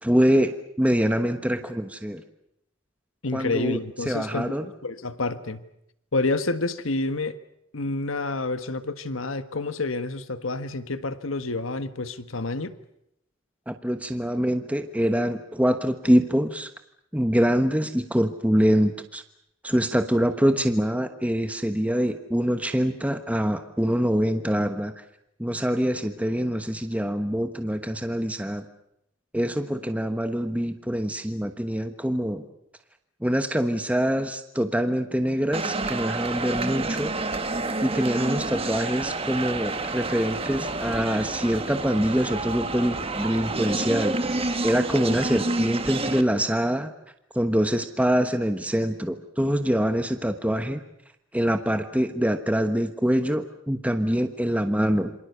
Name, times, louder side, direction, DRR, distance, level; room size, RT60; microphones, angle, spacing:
voice 1, 0.0-2.2 3.3-3.8 4.1-4.6 13.7-16.7 17.1-19.2 19.6-24.9 25.4-28.6 29.3-32.4 33.2-37.1 37.8-44.2 44.6-46.9 47.3-50.8 51.3-55.1, equal, 5° right, 7 dB, 1.1 m, -24 dB
voice 2, 3.2-5.6 6.1-7.4 7.7-12.7, left 3 dB, 80° left, 11 dB, 1.5 m, -29 dB
sound 1, 35.5-46.2, right 2 dB, 30° right, 1.6 m, -29 dB
28.0 x 25.5 x 6.9 m, 0.78 s
head